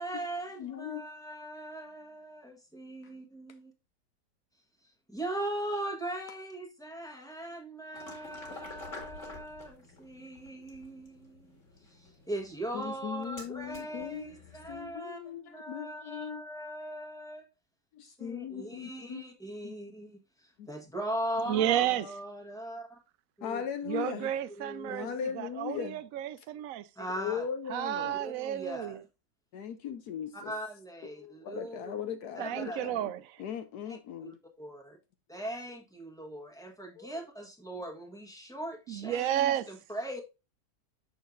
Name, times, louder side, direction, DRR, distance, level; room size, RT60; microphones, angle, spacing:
voice 1, 0.0-3.7 5.1-11.5 11.9-17.4 18.0-23.0 23.4-23.6 24.6-25.2 27.0-27.4 28.2-29.0 30.3-31.9 32.3-32.8 34.2-35.0 35.3-40.2, right 1 dB, ahead, 1.1 m, -40 dB
voice 2, 0.6-1.0 12.7-14.3 14.7-16.4 17.9-19.2 19.6-19.8 20.6-20.7 23.4-24.3 24.9-26.0 27.2-28.2 29.5-30.5 31.1-33.1 33.4-34.4 37.0-37.2, left 8 dB, 70° left, 1.1 m, -38 dB
sound 1, 7.9-14.9, left 3 dB, 45° left, 2.2 m, -50 dB
voice 3, 21.5-22.1 23.9-25.1 25.3-26.9 27.7-29.0 32.4-33.2 38.9-39.7, right 12 dB, 75° right, 0.8 m, -31 dB
6.5 x 6.5 x 2.6 m
omnidirectional pair, 1.9 m